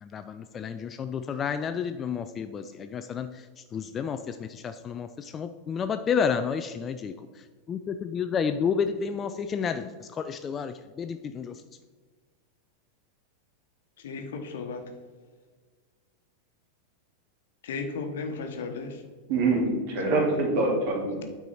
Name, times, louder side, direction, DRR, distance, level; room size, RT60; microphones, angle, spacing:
voice 1, 0.0-7.1 7.7-11.6, left 6 dB, 25° left, 9 dB, 0.3 m, -31 dB
voice 2, 14.0-14.8 17.6-19.0, left 4 dB, 60° left, 5 dB, 1.0 m, -34 dB
voice 3, 19.3-21.2, right 2 dB, 50° right, 0 dB, 2.1 m, -25 dB
9.1 x 4.7 x 4.1 m, 1.5 s
figure-of-eight pair, 90°, 0 cm